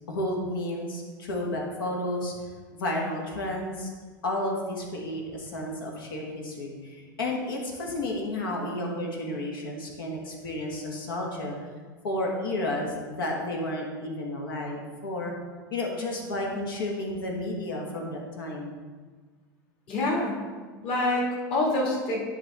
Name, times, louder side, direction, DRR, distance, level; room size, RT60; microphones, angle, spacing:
voice 1, 0.1-2.3 2.7-3.9 4.2-11.6 12.0-15.3 15.7-18.8, left 1 dB, 85° left, -1 dB, 1.4 m, -32 dB
voice 2, 19.9-20.4 20.8-22.3, left 2 dB, 50° left, -2 dB, 2.1 m, -26 dB
10.0 x 4.5 x 3.4 m, 1.5 s
hypercardioid pair, 90°, 11 cm